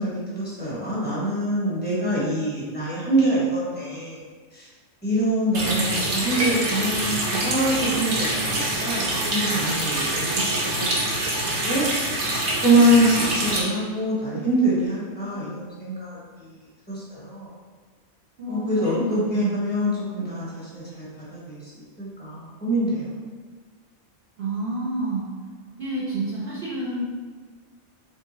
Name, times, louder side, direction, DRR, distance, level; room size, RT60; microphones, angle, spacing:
voice 1, 0.0-4.2 5.0-10.3 10.8-11.0 11.4-11.8 12.4-16.2 16.9-17.5 18.5-21.0 21.5-21.6 22.0-23.1, right 1 dB, 10° left, -8 dB, 1.0 m, -24 dB
Water tap faucet, 5.5-13.6, right 1 dB, 80° right, 1.3 m, -25 dB
voice 2, 18.4-19.6 24.4-25.3 25.8-27.3, right 2 dB, 50° right, -7 dB, 0.9 m, -29 dB
3.3 x 2.8 x 4.0 m, 1.5 s
omnidirectional pair, 1.5 m